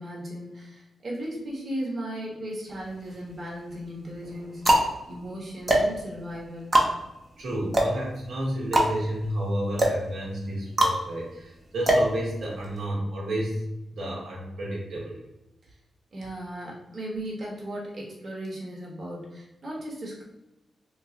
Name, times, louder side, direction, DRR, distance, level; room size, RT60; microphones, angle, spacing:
voice 1, 0.0-6.8 15.6-15.8 16.1-20.2, right 1 dB, 45° right, -3 dB, 1.1 m, -36 dB
sound 1, 2.7-3.4 4.1-12.8, right 1 dB, 30° right, 0.7 m, -25 dB
voice 2, 7.4-13.6 13.9-15.2, right 1 dB, 80° right, -4 dB, 1.0 m, -31 dB
3.1 x 2.2 x 3.8 m, 0.94 s
cardioid pair, 80°, 0 cm